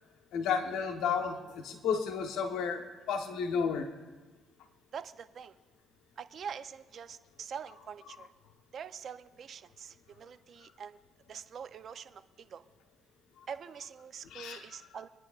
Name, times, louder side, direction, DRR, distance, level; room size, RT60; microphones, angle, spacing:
voice 1, 0.3-3.9 14.3-14.8, left 6 dB, 80° left, 5 dB, 1.1 m, -32 dB
voice 2, 4.9-5.6 6.2-8.3 8.7-11.0 11.3-12.6 13.5-15.1, right 7 dB, 50° right, 10 dB, 0.6 m, -44 dB
25.0 x 9.9 x 2.5 m, 1.3 s
cardioid pair, 95°, 0 cm